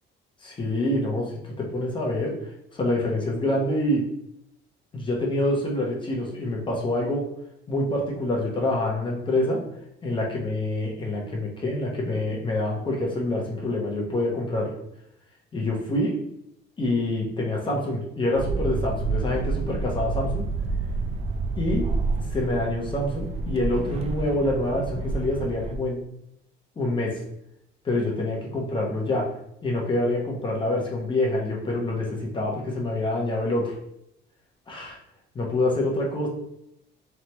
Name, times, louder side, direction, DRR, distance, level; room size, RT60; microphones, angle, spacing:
voice 1, 0.4-1.3 1.6-2.3 2.7-4.0 4.9-7.3 7.7-9.6 10.0-14.7 15.5-16.2 16.8-20.4 21.6-21.9 22.3-26.0 26.8-27.2 27.8-29.3 29.6-33.7 34.7-35.0 35.3-36.3, left 1 dB, 25° left, -2 dB, 1.0 m, -26 dB
sound 1, 18.3-25.7, right 3 dB, 35° right, 0.4 m, -29 dB
3.9 x 3.4 x 3.0 m, 0.78 s
cardioid pair, 150°, 19 cm